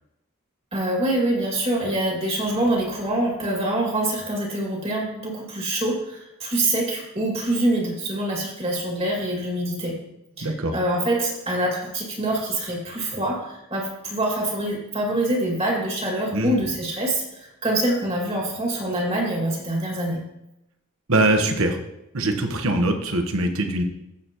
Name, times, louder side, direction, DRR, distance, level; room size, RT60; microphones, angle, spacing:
voice 1, 0.7-10.0 10.4-20.2, right 1 dB, 25° right, -1 dB, 2.2 m, -25 dB
voice 2, 10.4-10.8 16.3-16.6 21.1-21.8 22.1-23.8, right 1 dB, 70° right, 5 dB, 1.3 m, -22 dB
15.0 x 6.9 x 3.0 m, 0.87 s
head